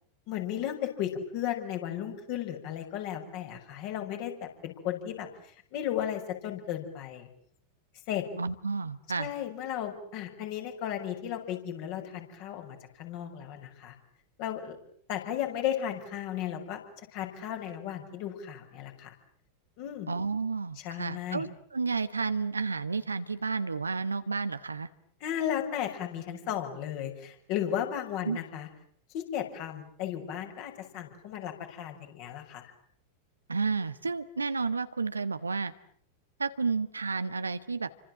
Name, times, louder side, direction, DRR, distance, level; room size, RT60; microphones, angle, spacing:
voice 1, 0.3-5.3 5.7-7.3 8.1-8.2 9.2-13.9 14.4-14.8 15.1-16.8 17.1-19.1 19.8-20.1 20.8-21.4 25.2-28.7 29.1-32.7, left 10 dB, 45° left, 4 dB, 6.4 m, -35 dB
voice 2, 8.4-9.3 20.1-24.9 28.2-28.4 33.5-35.7 36.4-37.9, right 4 dB, 75° right, 12 dB, 1.5 m, -31 dB
30.0 x 25.5 x 7.6 m, 0.63 s
figure-of-eight pair, 90°, 0 cm